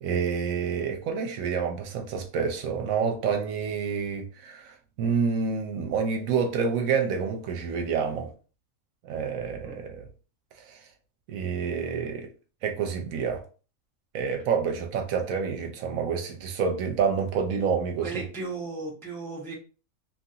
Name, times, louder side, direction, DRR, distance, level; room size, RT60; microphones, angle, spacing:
voice 1, 0.0-8.3 9.0-10.1 10.7-10.8 11.3-12.3 12.6-13.4 14.1-18.2, right 6 dB, 75° right, 1.0 m, -28 dB
voice 2, 18.0-19.5, right 3 dB, 5° left, 0.5 m, -35 dB
2.9 x 2.5 x 2.7 m
omnidirectional pair, 1.5 m